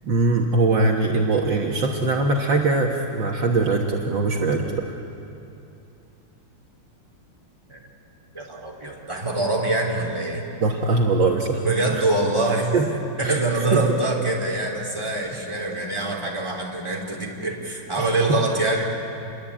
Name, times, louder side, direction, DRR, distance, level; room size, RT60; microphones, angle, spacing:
voice 1, 0.0-4.8 10.6-11.6 11.9-12.0 12.7-12.9 13.2-13.4 13.7-13.8, right 3 dB, 60° right, 0 dB, 2.0 m, -21 dB
voice 2, 8.3-10.4 11.6-12.7 13.2-18.9, right 2 dB, 10° right, -2 dB, 3.8 m, -24 dB
28.5 x 22.5 x 8.6 m, 2.8 s
omnidirectional pair, 2.4 m